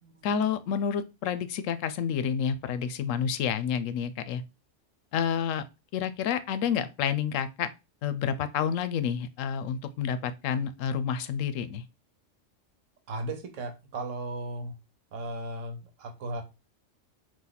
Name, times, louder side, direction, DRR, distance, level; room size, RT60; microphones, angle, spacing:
voice 1, 0.2-4.4 5.1-5.6 5.9-7.7 8.0-11.8, left 7 dB, 90° left, 1.0 m, -29 dB
voice 2, 13.1-14.8 15.1-16.4, right 2 dB, 80° right, 1.2 m, -36 dB
4.2 x 2.7 x 3.9 m
omnidirectional pair, 1.3 m